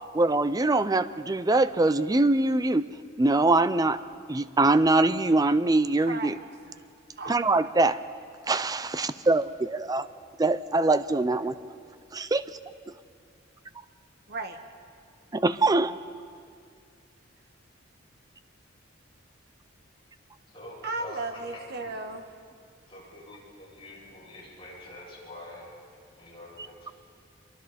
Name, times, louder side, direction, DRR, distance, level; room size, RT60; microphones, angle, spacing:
voice 1, 0.1-2.8 3.2-4.0 4.3-6.3 7.3-8.0 8.5-10.1 10.4-11.5 12.1-12.4 12.9-13.0 15.3-15.9, right 2 dB, 20° right, 13 dB, 0.5 m, -23 dB
voice 2, 11.3-11.6 14.3-14.6 20.8-22.3, right 3 dB, 55° right, 6 dB, 1.5 m, -35 dB
voice 3, 20.5-21.2 21.5-22.0 22.9-25.7 26.2-26.9, left 1 dB, 30° left, -6 dB, 7.1 m, -46 dB
27.5 x 23.5 x 4.3 m, 2.2 s
head